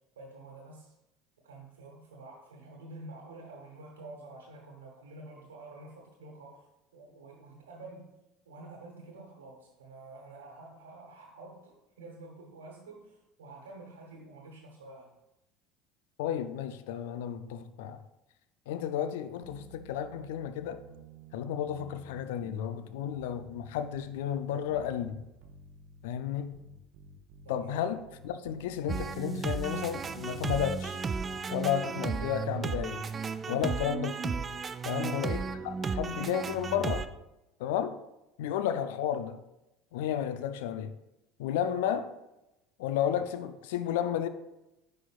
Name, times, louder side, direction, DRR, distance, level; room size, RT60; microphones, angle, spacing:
voice 1, 0.1-0.9 1.4-6.6 6.9-8.1 8.4-15.1 27.4-27.8 33.4-33.8 34.8-35.2, right 2 dB, 80° right, 1.2 m, -49 dB
voice 2, 16.2-18.0 18.7-20.8 21.3-25.2 26.0-26.6 27.5-31.0 31.5-33.0 33.5-34.3 34.8-37.1 37.6-38.0 38.4-39.4 39.9-41.0 41.4-42.1 42.8-44.3, left 9 dB, 70° left, 0.4 m, -32 dB
sound 1, 19.4-31.2, right 4 dB, 60° right, 0.7 m, -53 dB
sound 2, 28.9-37.1, right 5 dB, 30° right, 0.3 m, -34 dB
9.8 x 4.3 x 2.4 m
hypercardioid pair, 70°, 0 cm